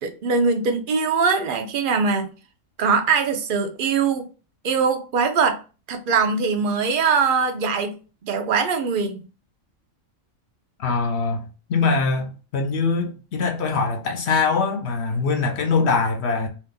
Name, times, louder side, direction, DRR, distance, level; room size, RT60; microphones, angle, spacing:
voice 1, 0.0-2.3 2.8-4.3 4.6-5.6 5.9-8.0 8.2-9.3, right 5 dB, 55° right, 0.6 m, -22 dB
voice 2, 10.8-11.4 11.7-16.5, left 4 dB, 60° left, 0.8 m, -22 dB
2.8 x 2.4 x 3.6 m
omnidirectional pair, 1.4 m